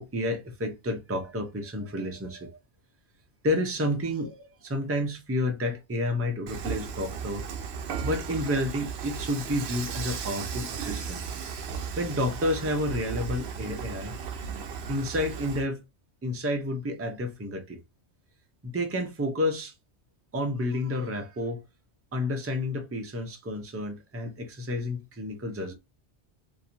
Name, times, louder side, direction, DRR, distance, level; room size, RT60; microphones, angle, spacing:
voice 1, 0.0-2.5 3.4-7.4 8.0-11.2 12.0-14.2 14.9-15.8 16.2-17.8 18.6-19.7 20.3-21.6 22.1-25.7, left 1 dB, 20° right, 0.4 m, -30 dB
Dishes pots and pans / Frying (food), 6.5-15.7, right 6 dB, 70° right, 0.9 m, -35 dB
2.9 x 2.6 x 2.6 m
omnidirectional pair, 1.1 m